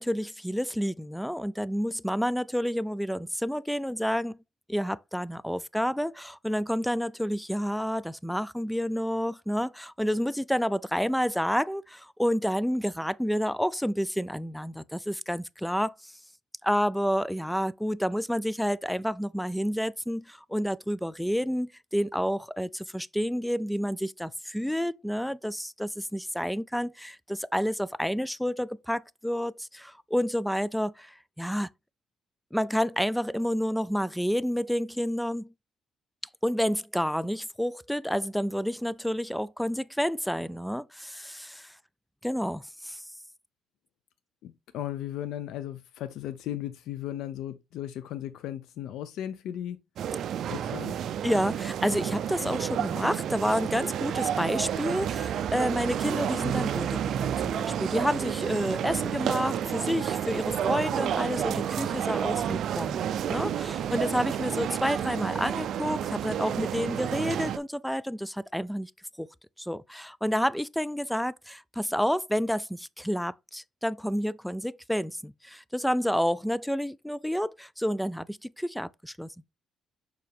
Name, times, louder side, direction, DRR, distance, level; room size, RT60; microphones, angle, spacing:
voice 1, 0.0-4.4 4.7-16.1 16.6-31.7 32.5-35.5 36.4-41.7 42.2-43.0 51.2-68.9 69.2-69.3 69.6-79.3, equal, ahead, 0.3 m, -29 dB
voice 2, 44.4-49.8 50.5-51.0, left 11 dB, 85° left, 0.5 m, -36 dB
sound 1, 50.0-67.6, right 9 dB, 65° right, 0.4 m, -30 dB
6.1 x 4.6 x 3.4 m
cardioid pair, 115°, 0 cm